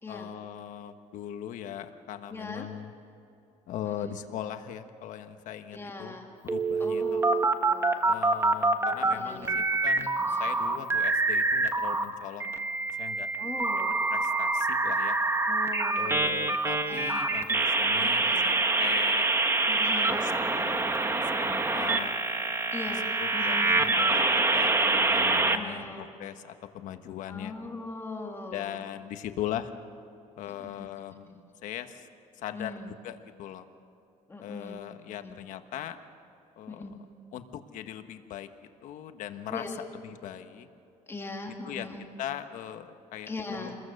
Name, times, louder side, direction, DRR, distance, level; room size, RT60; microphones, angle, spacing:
voice 1, 0.1-2.9 3.7-6.2 6.4-7.2 8.0-12.4 13.0-13.3 14.1-15.2 15.9-19.3 20.1-22.1 23.2-27.5 28.5-29.7 30.4-31.3 31.6-32.1 32.3-32.7 33.0-33.7 34.4-36.0 36.6-37.0 37.3-38.5 38.8-39.6 40.0-40.7 41.6-41.9 42.2-43.3 43.6-43.7, left 11 dB, 75° left, 8 dB, 1.3 m, -39 dB
voice 2, 2.3-2.7 3.9-4.2 5.7-6.3 6.8-8.1 8.8-9.6 10.2-10.5 12.4-12.5 13.4-14.0 15.5-16.4 16.7-17.2 18.0-18.5 19.7-20.5 22.7-23.7 25.5-26.1 27.3-28.8 30.6-30.9 31.3-31.4 32.5-32.9 34.3-34.8 35.2-35.4 36.7-37.0 39.5-39.8 41.1-42.1 43.3-43.8, left 3 dB, 20° left, 2 dB, 2.2 m, -41 dB
sound 1, 6.5-9.1 9.4-12.0 12.4-25.6, right 3 dB, 20° right, 1.4 m, -26 dB
29.0 x 21.5 x 6.5 m, 2.7 s
cardioid pair, 130°, 13 cm